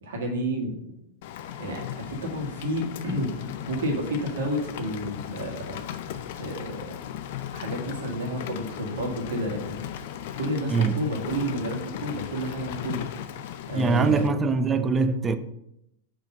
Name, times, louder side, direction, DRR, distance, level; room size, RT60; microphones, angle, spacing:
voice 1, 0.0-0.8 1.6-5.8 6.4-7.0 7.5-9.8 10.4-13.1 13.6-14.3, equal, 60° right, 1.8 m, -30 dB
Rain, 1.2-14.3, left 10 dB, 50° left, 0.5 m, -37 dB
voice 2, 10.7-11.0 13.7-15.4, right 4 dB, 20° right, 0.5 m, -23 dB
5.3 x 5.1 x 5.3 m
figure-of-eight pair, 90°, 0 cm